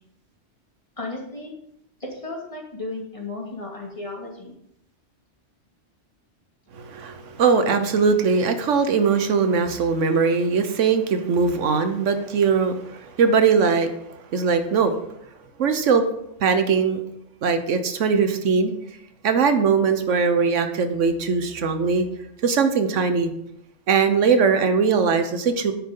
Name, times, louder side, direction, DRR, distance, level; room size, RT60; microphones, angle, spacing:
voice 1, 1.0-1.5 2.0-4.5, left 2 dB, 25° left, -1 dB, 2.2 m, -34 dB
voice 2, 6.8-13.9 14.3-15.0 15.6-16.1 16.4-17.0 17.4-18.7 19.2-22.1 22.4-23.3 23.9-25.7, right 5 dB, 85° right, 9 dB, 1.2 m, -20 dB
9.5 x 8.8 x 3.8 m, 0.78 s
omnidirectional pair, 1.2 m